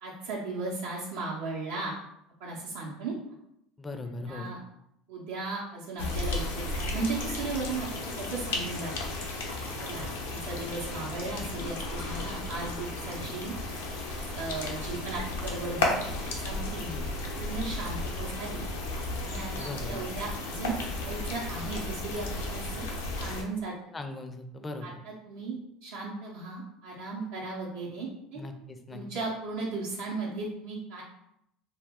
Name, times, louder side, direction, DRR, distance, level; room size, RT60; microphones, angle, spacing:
voice 1, 0.0-1.9 2.4-3.4 4.3-4.6 5.1-8.9 9.8-13.5 14.3-16.8 17.3-18.6 19.2-20.7 21.0-22.9 23.2-23.7 24.8-28.4 28.9-31.0, right 3 dB, 80° right, -5 dB, 0.6 m, -36 dB
voice 2, 3.8-4.5 9.9-10.3 16.9-17.1 19.5-20.0 23.9-24.9 28.3-29.0, left 2 dB, 20° left, 6 dB, 0.4 m, -39 dB
sound 1, 6.0-23.4, left 2 dB, 90° left, 0.5 m, -34 dB
2.1 x 2.1 x 3.4 m, 0.78 s
hypercardioid pair, 85°, 0 cm